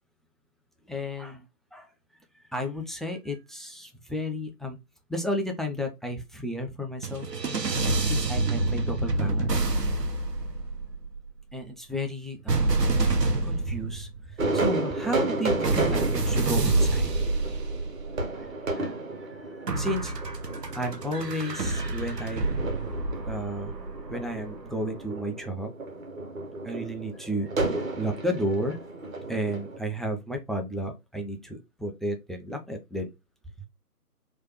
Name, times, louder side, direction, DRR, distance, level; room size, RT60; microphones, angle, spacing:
voice 1, 0.9-1.4 1.7-1.9 2.5-4.8 5.1-7.3 8.0-9.6 11.5-12.7 13.4-17.1 18.7-20.1 20.7-22.5 23.2-23.8 24.1-25.7 26.6-28.8 29.3-33.1, equal, ahead, 4 dB, 0.3 m, -32 dB
sound 1, 7.0-11.3 12.5-14.4 15.6-18.5 19.7-24.7, right 2 dB, 85° right, 0.8 m, -28 dB
sound 2, 14.4-29.8, right 2 dB, 55° right, 1.1 m, -33 dB
3.1 x 2.3 x 2.8 m, 0.22 s
figure-of-eight pair, 150°, 47 cm